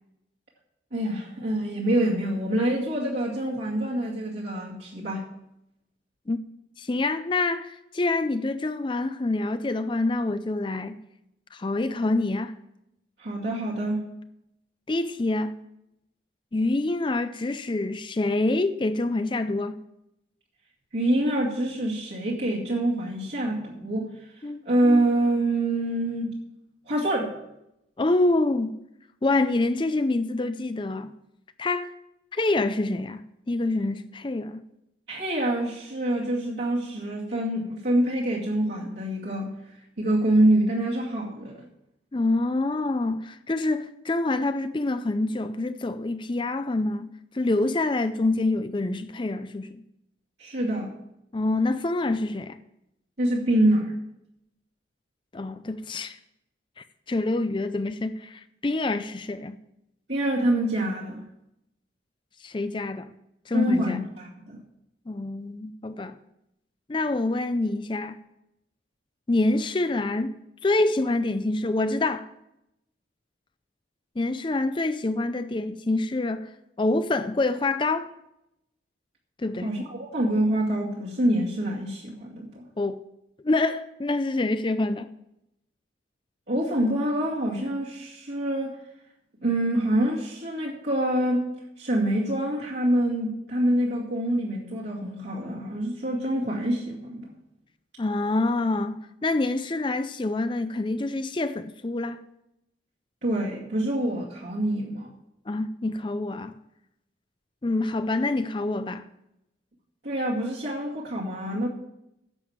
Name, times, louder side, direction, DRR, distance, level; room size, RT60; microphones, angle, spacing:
voice 1, 0.9-5.2 13.2-14.2 20.9-24.1 24.7-26.3 26.9-27.3 35.1-39.5 40.0-41.6 50.4-50.9 53.2-54.0 60.1-61.2 63.5-64.6 79.6-82.7 86.5-88.8 89.4-91.5 91.8-97.3 103.2-105.1 110.0-111.7, right 1 dB, 60° right, 2.3 m, -26 dB
voice 2, 6.8-11.0 11.5-12.5 14.9-15.5 16.5-19.8 24.4-24.6 28.0-28.7 29.2-31.1 31.6-31.9 32.3-34.6 42.1-49.8 51.3-52.6 55.3-56.2 56.8-59.6 62.4-63.1 63.5-64.0 65.1-66.2 66.9-68.2 69.3-70.3 70.6-72.3 74.2-76.5 76.8-78.1 79.4-79.7 82.8-83.0 83.4-85.1 98.0-102.2 105.5-106.5 107.6-109.0, left 2 dB, 25° left, 0.4 m, -26 dB
10.5 x 7.1 x 7.3 m
head